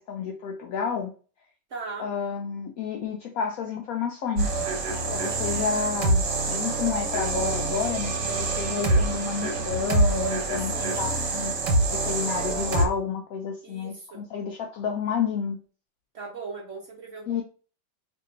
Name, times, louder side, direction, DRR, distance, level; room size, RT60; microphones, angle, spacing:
voice 1, 0.1-1.1 2.0-4.6 5.1-11.5 11.9-15.6 17.3-17.4, left 6 dB, 75° left, 1 dB, 0.8 m, -30 dB
voice 2, 1.7-2.1 10.6-11.2 12.4-12.5 13.6-14.2 16.1-17.4, right 4 dB, 55° right, -1 dB, 0.9 m, -39 dB
sound 1, 4.4-12.9, right 2 dB, 75° right, 1.5 m, -26 dB
2.8 x 2.6 x 3.8 m, 0.38 s
omnidirectional pair, 1.9 m